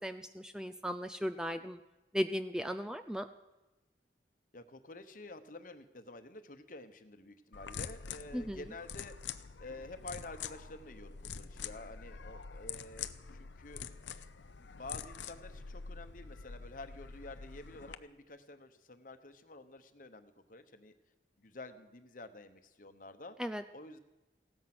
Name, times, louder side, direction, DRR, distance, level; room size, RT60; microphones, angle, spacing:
voice 1, 0.0-1.8 2.1-3.3 8.3-8.6 23.4-23.6, equal, 5° right, 8 dB, 0.4 m, -36 dB
voice 2, 4.5-9.2 9.6-13.8 14.6-21.0 21.4-23.4 23.7-24.0, left 2 dB, 45° left, 9 dB, 1.1 m, -49 dB
sound 1, 7.5-17.9, left 7 dB, 85° left, 0.7 m, -46 dB
16.5 x 13.5 x 6.1 m, 1.1 s
head